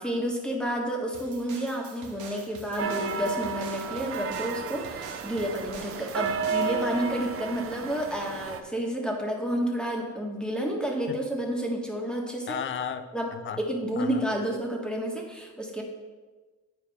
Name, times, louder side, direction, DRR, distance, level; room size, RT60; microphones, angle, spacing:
voice 1, 0.0-12.6 13.1-13.3 13.6-15.8, equal, 5° left, 0 dB, 1.5 m, -30 dB
sound 1, 1.1-6.8, right 4 dB, 75° right, 1.2 m, -46 dB
sound 2, 2.8-8.6, right 6 dB, 50° right, 0.6 m, -32 dB
voice 2, 12.5-13.6 14.0-14.3, left 7 dB, 40° left, 11 dB, 0.6 m, -34 dB
9.7 x 4.8 x 3.5 m, 1.3 s
cardioid pair, 90°, 30 cm